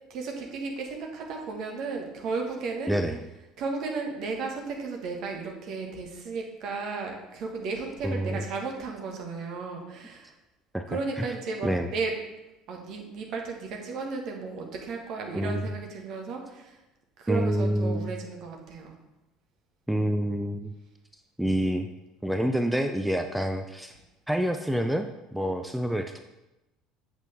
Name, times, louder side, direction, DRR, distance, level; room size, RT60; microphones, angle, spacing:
voice 1, 0.1-2.9 3.6-10.3 10.9-12.1 12.7-16.8 17.2-18.9, right 4 dB, 50° right, 1 dB, 1.5 m, -34 dB
voice 2, 2.9-3.2 8.0-8.4 10.7-10.8 11.2-11.3 11.6-11.9 15.3-15.6 17.3-18.1 19.9-20.7 21.4-21.9 22.2-23.9 24.3-26.2, equal, 5° right, 6 dB, 0.5 m, -27 dB
8.1 x 6.3 x 3.5 m, 0.97 s
figure-of-eight pair, 60°, 0 cm